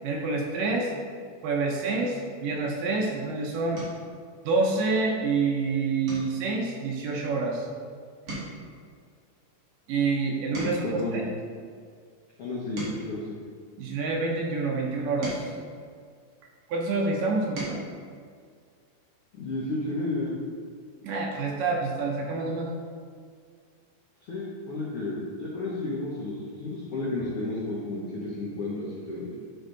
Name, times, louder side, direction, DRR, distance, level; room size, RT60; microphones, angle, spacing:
voice 1, 0.0-0.9 1.4-3.8 4.4-7.7 9.9-11.2 13.8-15.4 16.7-17.8 21.0-22.7, right 3 dB, 75° right, 0 dB, 2.2 m, -27 dB
sound 1, 3.7-4.1 4.6-5.0 5.3-5.5 6.0-7.8 8.1-11.1 11.7-14.1 14.8-16.7 17.2-17.9 19.3-19.4 19.7-19.9, right 1 dB, 50° right, 2.7 m, -42 dB
voice 2, 10.6-11.2 12.4-13.4 19.3-20.4 24.3-29.3, left 2 dB, 80° left, -5 dB, 1.3 m, -32 dB
9.5 x 4.6 x 3.9 m, 2.1 s
omnidirectional pair, 4.2 m